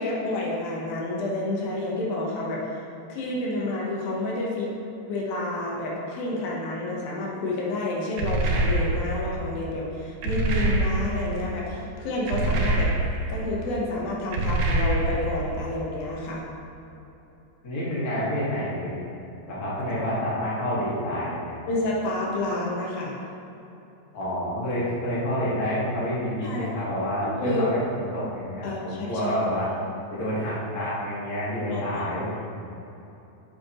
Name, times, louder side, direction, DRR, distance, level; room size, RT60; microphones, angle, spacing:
voice 1, 0.0-4.7 5.1-12.9 13.3-16.5 19.9-20.0 21.7-23.2 26.4-26.7 27.4-27.7 28.6-29.3 31.7-32.0, left 2 dB, 85° left, -3 dB, 3.0 m, -29 dB
sound 1, 8.2-9.3 10.2-11.3 12.3-13.4 14.3-15.4, right 2 dB, 90° right, 1.4 m, -24 dB
voice 2, 17.6-19.1 19.5-21.6 24.1-29.7 30.1-32.3, equal, 30° left, -8 dB, 1.9 m, -28 dB
8.5 x 8.3 x 3.0 m, 3.0 s
omnidirectional pair, 4.1 m